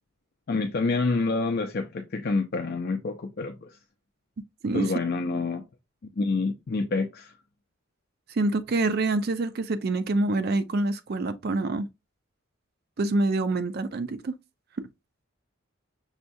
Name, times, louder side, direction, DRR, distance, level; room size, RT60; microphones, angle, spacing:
voice 1, 0.5-3.8 4.7-5.6 6.2-7.3, left 3 dB, 50° left, 0.5 m, -27 dB
voice 2, 8.3-11.9 13.0-14.4, right 2 dB, 50° right, 0.4 m, -26 dB
6.2 x 2.3 x 2.6 m
head